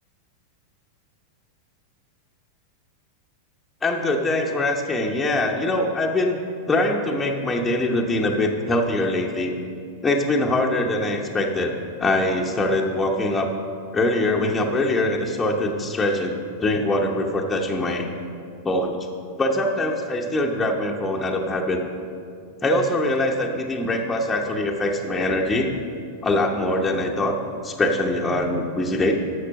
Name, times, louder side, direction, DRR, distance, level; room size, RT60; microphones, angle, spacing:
voice 1, 3.8-6.4 6.7-9.5 10.0-11.7 12.0-13.5 13.9-18.1 18.6-19.0 19.4-21.8 22.6-25.7 26.2-29.1, left 1 dB, 15° left, 0 dB, 0.9 m, -23 dB
12.0 x 6.8 x 5.3 m, 2.4 s
figure-of-eight pair, 90°, 0 cm